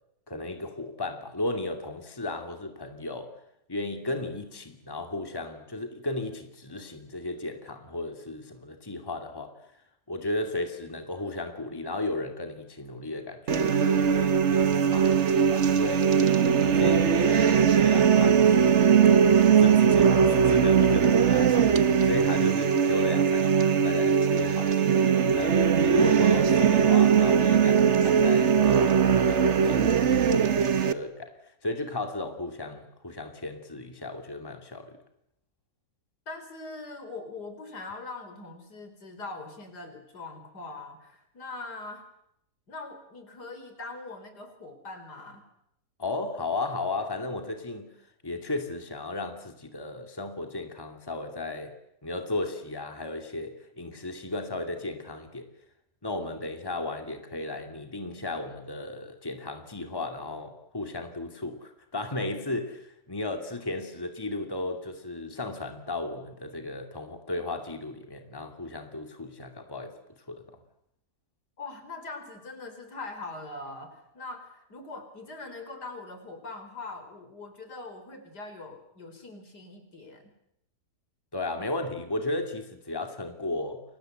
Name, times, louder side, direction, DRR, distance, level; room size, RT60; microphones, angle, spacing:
voice 1, 0.3-3.3 3.7-9.5 10.1-16.1 16.6-19.0 19.6-31.3 31.6-35.0 46.0-47.9 48.2-51.7 52.0-55.5 56.0-69.9 70.3-70.4 81.3-83.8, left 2 dB, 15° left, 5 dB, 2.5 m, -34 dB
sound 1, 13.5-30.9, right 7 dB, 45° right, 1.4 m, -21 dB
voice 2, 36.3-42.1 42.7-45.4 71.6-80.3, left 3 dB, 70° left, 7 dB, 5.0 m, -42 dB
30.0 x 24.0 x 8.0 m, 0.80 s
omnidirectional pair, 1.8 m